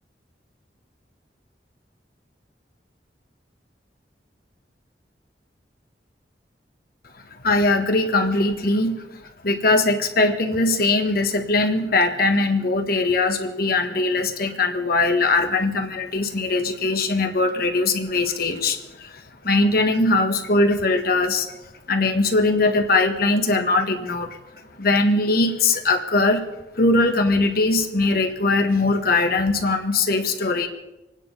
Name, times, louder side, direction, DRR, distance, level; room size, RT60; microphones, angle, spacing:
voice 1, 7.4-21.6 21.9-26.4 26.7-30.7, left 2 dB, 60° left, 5 dB, 1.5 m, -21 dB
25.5 x 9.8 x 5.5 m, 0.99 s
head